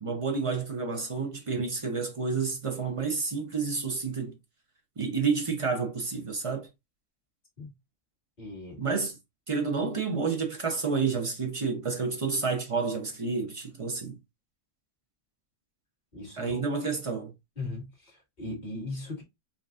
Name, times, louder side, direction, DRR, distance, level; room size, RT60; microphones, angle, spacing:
voice 1, 0.0-4.4 5.0-6.7 8.8-9.2 9.5-14.2 16.4-17.3, right 4 dB, 45° right, 0.4 m, -30 dB
voice 2, 8.4-8.8 16.1-16.6 17.6-19.2, left 2 dB, 30° left, 1.8 m, -38 dB
5.0 x 2.4 x 2.4 m
omnidirectional pair, 1.5 m